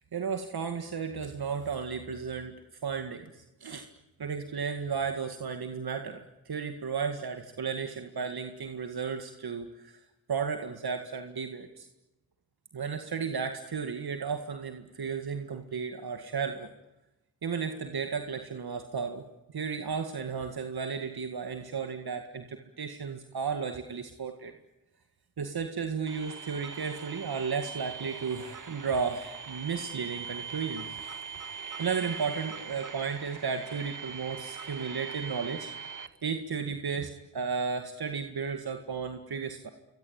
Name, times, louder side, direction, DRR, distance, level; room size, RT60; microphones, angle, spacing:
voice 1, 0.0-2.5 2.8-3.9 4.2-10.0 10.3-11.9 12.7-16.7 17.4-24.5 25.4-35.7 36.2-39.7, right 5 dB, 75° right, 6 dB, 2.1 m, -34 dB
sound 1, 26.1-36.1, right 6 dB, 55° right, 2.2 m, -41 dB
26.5 x 24.0 x 8.9 m, 0.97 s
cardioid pair, 45°, 37 cm